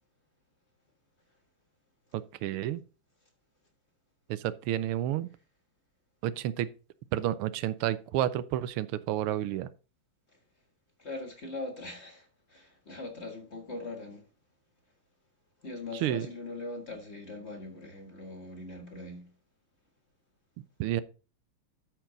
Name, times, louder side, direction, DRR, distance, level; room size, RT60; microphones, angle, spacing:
voice 1, 2.1-2.8 4.3-5.3 6.2-6.7 7.1-9.7 15.9-16.3 20.8-21.0, right 12 dB, 85° right, 1.5 m, -30 dB
voice 2, 11.0-14.2 15.6-19.3, left 2 dB, 35° left, 1.6 m, -41 dB
13.0 x 4.6 x 3.8 m
omnidirectional pair, 2.4 m